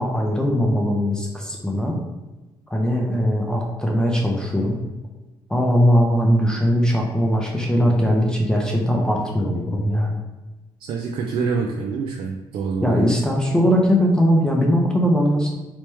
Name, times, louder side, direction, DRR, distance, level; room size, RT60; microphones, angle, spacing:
voice 1, 0.0-2.0 2.7-4.8 5.5-10.2 12.8-15.5, equal, 10° left, -1 dB, 0.5 m, -20 dB
voice 2, 10.9-13.0, right 5 dB, 70° right, 1 dB, 0.4 m, -26 dB
3.3 x 3.0 x 3.0 m, 1.1 s
cardioid pair, 105°, 9 cm